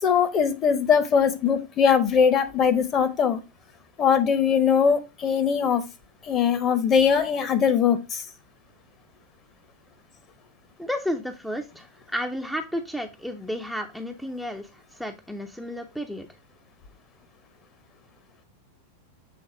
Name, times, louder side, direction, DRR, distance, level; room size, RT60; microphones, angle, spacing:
voice 1, 0.0-3.4 4.0-5.8 6.2-8.2, left 7 dB, 30° left, 9 dB, 1.0 m, -21 dB
voice 2, 10.8-14.7 15.0-16.3, equal, ahead, 4 dB, 0.7 m, -32 dB
7.2 x 3.4 x 4.5 m, 0.25 s
figure-of-eight pair, 90°, 0 cm